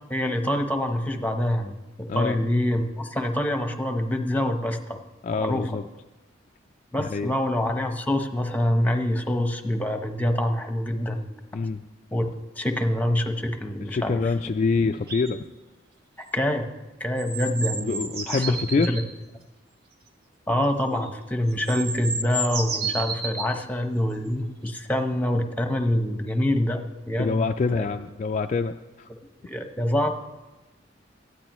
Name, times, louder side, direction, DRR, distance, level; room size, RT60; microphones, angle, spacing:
voice 1, 0.1-5.0 5.3-5.8 6.9-11.3 12.1-14.2 16.3-16.7 17.0-19.0 20.5-27.9 29.4-30.1, left 1 dB, 10° left, 6 dB, 0.9 m, -26 dB
voice 2, 5.2-5.8 7.0-7.3 11.5-11.8 13.9-15.4 17.8-19.0 27.2-29.1, left 4 dB, 40° left, 6 dB, 0.3 m, -26 dB
sound 1, 15.1-15.3 17.2-19.1 21.0-21.1 21.5-23.5 24.7-24.8, right 3 dB, 55° right, 1.3 m, -31 dB
18.0 x 13.0 x 3.1 m, 1.1 s
head